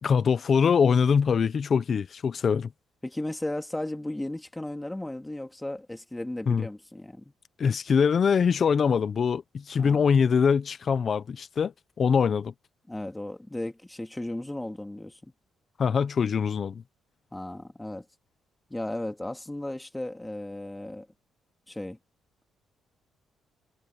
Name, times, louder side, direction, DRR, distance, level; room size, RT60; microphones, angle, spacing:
voice 1, 0.0-2.7 6.5-6.7 7.6-12.5 15.8-16.8, left 6 dB, 50° left, 1.0 m, -23 dB
voice 2, 3.0-7.3 9.8-10.0 12.9-15.3 17.3-18.0 18.7-21.1 21.7-22.0, left 1 dB, 10° left, 2.9 m, -35 dB
cardioid pair, 90°, 0 cm